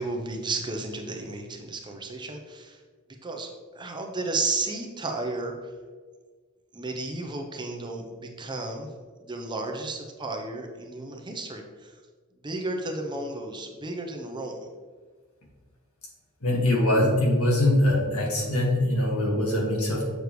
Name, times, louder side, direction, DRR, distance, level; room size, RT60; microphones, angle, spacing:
voice 1, 0.0-2.8 3.2-5.7 6.7-8.9 9.2-11.9 12.4-14.6, right 3 dB, 20° right, 2 dB, 0.7 m, -33 dB
voice 2, 16.4-20.1, left 1 dB, 75° left, -1 dB, 1.9 m, -23 dB
6.7 x 6.5 x 3.2 m, 1.5 s
head